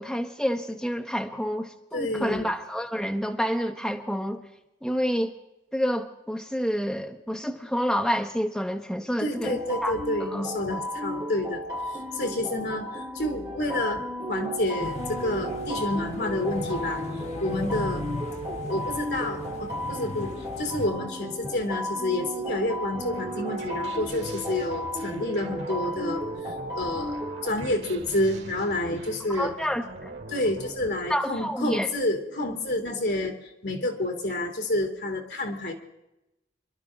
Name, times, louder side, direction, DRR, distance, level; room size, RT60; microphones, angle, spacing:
voice 1, 0.0-4.4 4.8-5.3 5.7-10.0 10.3-10.5 29.3-30.2 31.1-31.9, equal, 5° left, 3 dB, 1.0 m, -28 dB
voice 2, 1.9-2.5 9.2-17.0 17.4-18.0 18.5-29.5 30.3-35.7, left 1 dB, 65° left, 4 dB, 2.6 m, -29 dB
sound 1, 9.3-27.5, equal, 20° right, 6.7 m, -34 dB
sound 2, 14.8-20.9, left 1 dB, 35° left, 1.1 m, -37 dB
sound 3, 22.9-31.0, right 2 dB, 85° right, 2.3 m, -43 dB
27.0 x 12.0 x 3.7 m, 0.93 s
head